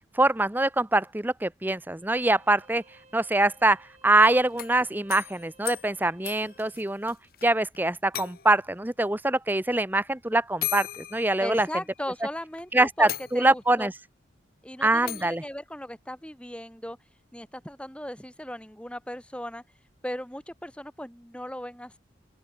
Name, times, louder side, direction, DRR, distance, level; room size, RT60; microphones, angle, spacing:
voice 1, 0.1-7.2 7.4-11.7 12.7-13.9 14.8-15.4, right 2 dB, 10° right, 0.6 m, -24 dB
Bowed string instrument, 2.0-6.8, right 3 dB, 35° right, 7.5 m, -58 dB
sound 1, 4.4-7.5 7.7-7.8 8.1-8.7 9.8-9.9 10.6-12.0 12.5-12.6 13.1-13.8 15.1-15.4, left 13 dB, 50° left, 1.3 m, -37 dB
voice 2, 11.4-13.9 14.6-17.0 17.3-19.6 20.0-22.0, left 1 dB, 5° left, 3.8 m, -37 dB
open air
head